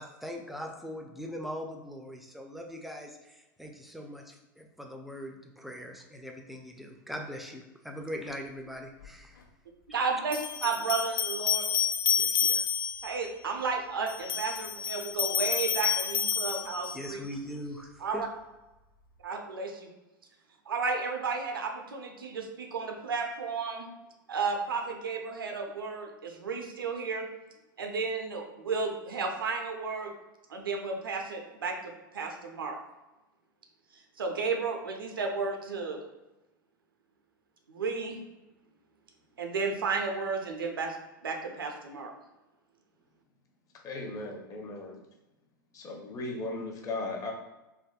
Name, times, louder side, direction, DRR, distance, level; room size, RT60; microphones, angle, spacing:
voice 1, 0.0-9.4 12.1-12.7 16.9-18.2, equal, ahead, 2 dB, 0.4 m, -41 dB
sound 1, 9.0-9.1 10.3-13.1 14.1-17.1, left 7 dB, 80° left, 0.4 m, -29 dB
voice 2, 9.9-11.7 13.0-17.2 18.0-18.3 19.2-19.9 20.7-23.9 24.3-27.3 27.8-30.1 30.5-32.8 34.2-36.0 37.7-38.2 39.4-41.0 41.2-42.1, right 4 dB, 90° right, 3 dB, 0.5 m, -33 dB
voice 3, 43.8-45.0 45.7-47.3, left 2 dB, 30° left, 1 dB, 0.7 m, -37 dB
3.4 x 2.1 x 2.3 m, 1.0 s
hypercardioid pair, 100°, 11 cm